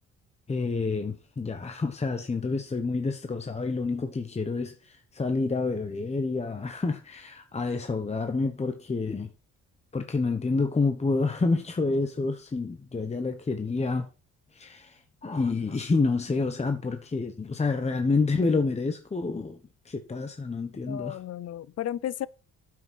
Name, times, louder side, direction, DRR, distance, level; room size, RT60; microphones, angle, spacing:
voice 1, 0.5-9.3 9.9-14.1 14.5-19.6 19.8-21.2, left 3 dB, 20° left, 1.1 m, -28 dB
voice 2, 20.9-22.3, left 11 dB, 55° left, 0.6 m, -33 dB
9.4 x 7.7 x 5.4 m
cardioid pair, 90°, 30 cm